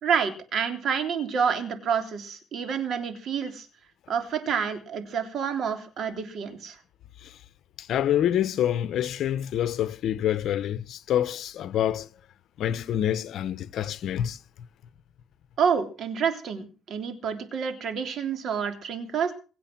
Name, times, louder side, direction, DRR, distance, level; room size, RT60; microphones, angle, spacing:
voice 1, 0.0-3.7 4.1-6.8 15.6-19.3, right 7 dB, 55° right, 3.3 m, -28 dB
voice 2, 7.9-12.1 12.6-14.4, left 11 dB, 65° left, 1.0 m, -26 dB
24.0 x 8.2 x 6.1 m
cardioid pair, 110°, 0 cm